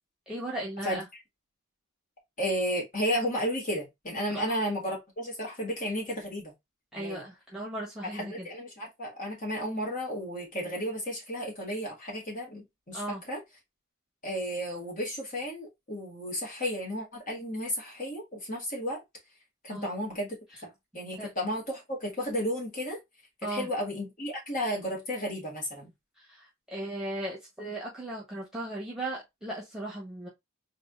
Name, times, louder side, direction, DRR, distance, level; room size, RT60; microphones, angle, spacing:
voice 1, 0.3-1.0 4.3-4.4 6.9-8.5 12.9-13.2 19.7-19.9 21.2-21.3 23.4-23.7 26.2-30.3, right 1 dB, 5° right, 1.5 m, -37 dB
voice 2, 2.4-6.5 7.0-7.2 8.0-13.4 14.2-19.0 19.6-20.4 20.6-23.0 23.4-25.9, equal, 35° left, 2.0 m, -33 dB
4.0 x 2.8 x 3.7 m
head